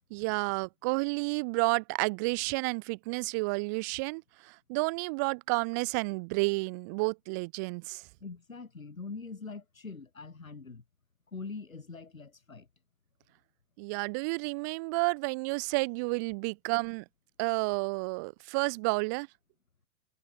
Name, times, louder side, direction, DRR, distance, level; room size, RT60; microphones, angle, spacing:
voice 1, 0.1-8.0 13.8-17.0 17.4-19.3, right 31 dB, 15° right, 0.4 m, -31 dB
voice 2, 8.2-10.8 11.3-12.7, left 4 dB, 85° left, 5.2 m, -43 dB
figure-of-eight pair, 120°, 40 cm